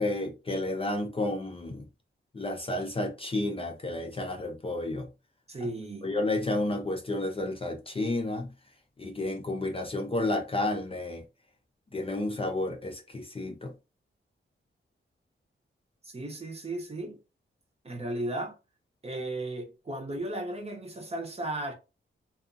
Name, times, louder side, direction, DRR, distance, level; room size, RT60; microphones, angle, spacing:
voice 1, 0.0-1.8 2.3-5.1 6.0-8.5 9.0-11.2 11.9-13.7, left 2 dB, 25° left, 0.5 m, -31 dB
voice 2, 5.5-6.1 16.0-17.2 17.8-18.6 19.0-21.7, right 1 dB, 30° right, 0.7 m, -35 dB
2.5 x 2.3 x 2.5 m
wide cardioid pair, 100°, 21 cm